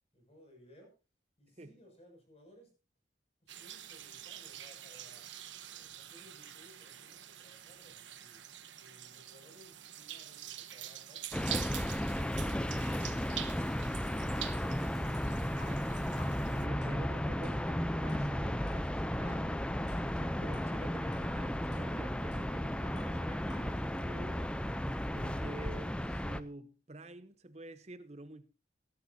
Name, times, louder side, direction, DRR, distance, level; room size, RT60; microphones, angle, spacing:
voice 1, 0.1-1.0 1.4-2.7 3.6-5.3 5.6-8.4 8.8-11.3, equal, 35° left, 6.9 m, -61 dB
sound 1, 3.5-16.7, right 11 dB, 90° right, 1.2 m, -46 dB
sound 2, 11.3-26.4, equal, 5° left, 0.6 m, -34 dB
sound 3, 15.0-15.9 16.2-16.5 16.8-18.3 18.7-18.9 19.3-20.8 21.1-21.4 21.7-23.2 23.5-23.8, left 1 dB, 75° left, 8.0 m, -60 dB
voice 2, 15.5-16.1 16.4-19.7 20.0-24.6 25.1-28.5, right 2 dB, 35° right, 1.0 m, -49 dB
19.0 x 12.5 x 2.8 m
head